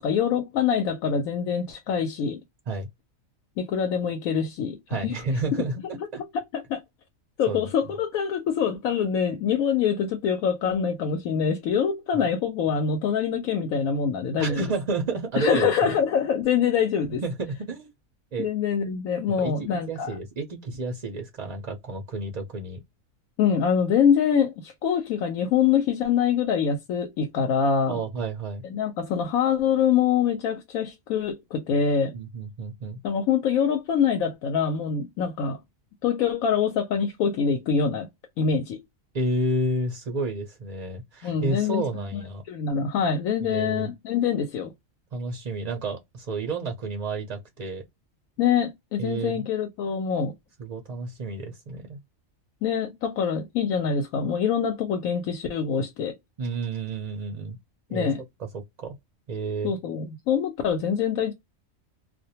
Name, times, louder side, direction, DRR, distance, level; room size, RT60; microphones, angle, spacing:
voice 1, 0.0-2.4 3.6-4.8 5.0-5.1 6.3-6.8 7.4-14.6 15.4-17.2 18.4-20.1 23.4-28.0 28.6-32.1 33.0-35.6 36.0-38.1 38.4-38.8 41.2-42.2 42.5-44.7 48.4-50.3 52.6-56.1 57.9-58.2 59.6-61.3, left 7 dB, 90° left, 1.1 m, -25 dB
voice 2, 4.9-6.2 7.5-7.7 12.1-12.3 14.4-15.7 17.1-17.9 18.3-18.5 19.4-22.8 27.9-28.6 32.1-33.0 39.1-42.4 43.4-43.9 45.1-47.8 49.0-49.5 50.6-52.0 56.4-57.6 57.9-58.1 58.4-59.0 59.3-59.7, right 2 dB, 55° right, 0.4 m, -30 dB
2.4 x 2.1 x 2.7 m
omnidirectional pair, 1.4 m